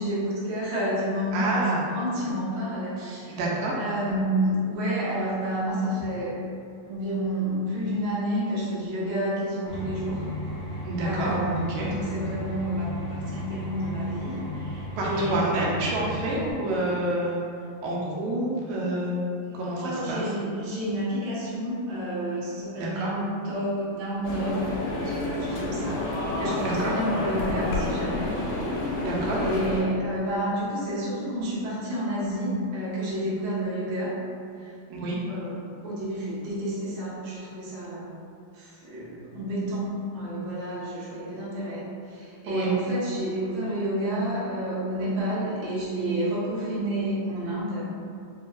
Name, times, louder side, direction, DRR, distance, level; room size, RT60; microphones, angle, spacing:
voice 1, 0.0-3.4 3.7-6.4 6.9-10.3 11.0-15.9 18.2-18.3 19.4-28.3 29.4-34.2 34.6-34.7 35.3-35.6 35.8-38.1 38.5-47.9, right 1 dB, 65° right, -8 dB, 1.2 m, -30 dB
voice 2, 1.3-1.8 3.3-3.8 10.8-11.3 11.7-11.9 15.0-17.4 17.8-19.2 19.5-20.3 22.8-23.1 26.6-26.9 29.0-29.4 34.9-35.2 42.5-42.7, right 1 dB, 85° right, -4 dB, 1.9 m, -28 dB
sound 1, 9.7-16.5, left 1 dB, 60° left, 1.8 m, -35 dB
sound 2, 24.2-29.8, left 2 dB, 80° left, 1.8 m, -29 dB
4.5 x 2.7 x 2.4 m, 2.4 s
omnidirectional pair, 3.3 m